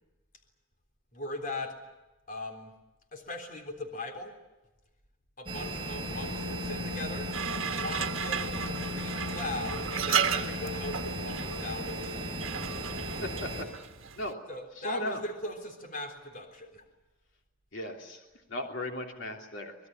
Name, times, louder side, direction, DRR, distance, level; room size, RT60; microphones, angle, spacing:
voice 1, 1.1-1.8 2.3-2.7 3.1-4.3 5.4-7.3 7.7-12.2 14.5-16.8, left 2 dB, 40° left, 4 dB, 3.7 m, -39 dB
sound 1, 5.5-13.6, equal, 25° right, 5.1 m, -35 dB
sound 2, 7.3-14.3, right 7 dB, 80° right, 1.5 m, -35 dB
voice 2, 13.2-13.7 14.1-14.4 14.8-15.2 17.7-18.2 18.5-19.8, left 1 dB, 70° left, 2 dB, 3.2 m, -36 dB
25.0 x 21.0 x 9.4 m, 1.0 s
head